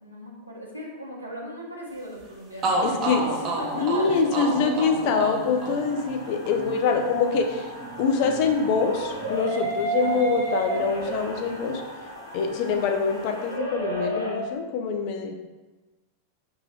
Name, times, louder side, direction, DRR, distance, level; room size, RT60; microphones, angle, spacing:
voice 1, 0.0-5.1 6.1-6.3 9.9-10.4, equal, 90° right, -3 dB, 0.9 m, -39 dB
sound 1, 2.2-2.3 2.6-10.5 10.7-11.9, right 2 dB, 30° right, 0.8 m, -32 dB
voice 2, 2.8-3.3 3.8-7.7 8.0-11.8 12.3-15.3, left 5 dB, 45° left, 4 dB, 0.5 m, -24 dB
sound 2, 4.6-14.4, right 2 dB, 90° left, 0.9 m, -33 dB
4.7 x 2.6 x 4.2 m, 1.2 s
figure-of-eight pair, 90°, 0 cm